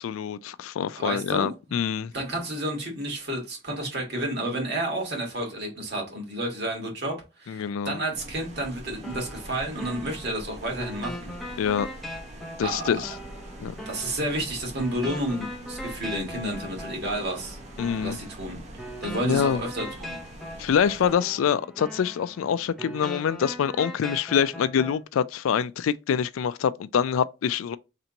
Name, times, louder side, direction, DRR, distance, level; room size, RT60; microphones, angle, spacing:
voice 1, 0.0-2.1 7.5-8.0 11.6-11.9 12.6-13.1 13.6-13.7 17.8-18.2 19.2-19.6 20.6-27.8, left 8 dB, 85° left, 0.3 m, -25 dB
voice 2, 1.0-1.5 2.1-11.4 12.6-12.8 13.8-17.6 17.9-18.6 19.0-20.2, right 1 dB, 50° right, 1.7 m, -31 dB
sound 1, 8.1-21.1, right 1 dB, 30° right, 0.8 m, -44 dB
sound 2, 9.0-25.0, equal, ahead, 0.5 m, -40 dB
3.3 x 2.9 x 3.9 m
head